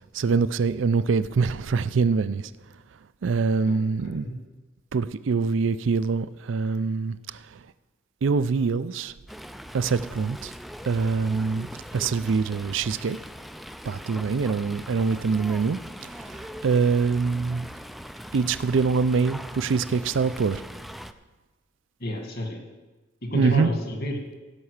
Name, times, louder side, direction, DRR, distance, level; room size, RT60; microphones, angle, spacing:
voice 1, 0.1-2.4 3.2-4.3 4.9-7.4 8.2-9.1 9.7-10.5 10.9-11.7 11.9-13.2 13.9-15.8 16.3-17.7 18.3-20.6 23.3-23.7, right 4 dB, 70° right, 0.4 m, -24 dB
voice 2, 4.0-4.4 22.0-22.6 23.2-24.2, equal, 55° left, 2.0 m, -30 dB
Fowl, 9.3-21.1, equal, ahead, 0.4 m, -41 dB
16.5 x 5.8 x 6.5 m
head